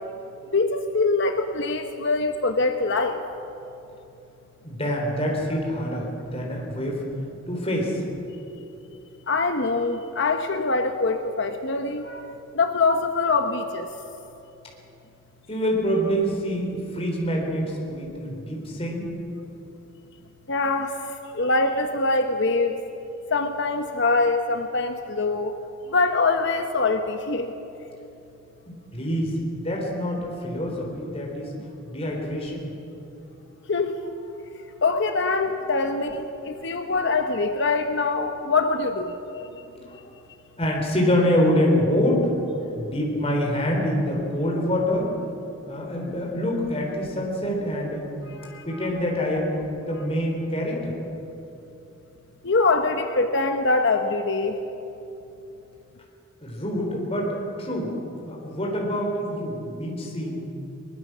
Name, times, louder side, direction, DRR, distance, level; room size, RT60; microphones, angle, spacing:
voice 1, 0.5-3.2 9.3-13.9 20.5-22.7 23.3-25.6 25.9-27.5 33.7-34.0 34.8-39.2 48.4-48.6 52.4-54.6, left 3 dB, 60° left, 6 dB, 1.0 m, -24 dB
voice 2, 4.6-7.0 7.5-8.0 15.5-19.1 28.7-31.5 31.9-32.7 36.5-36.9 39.3-40.0 40.6-45.1 45.7-48.1 48.7-50.9 56.4-57.9 58.3-60.4, equal, 30° left, -1 dB, 3.9 m, -26 dB
22.5 x 21.0 x 6.3 m, 3.0 s
head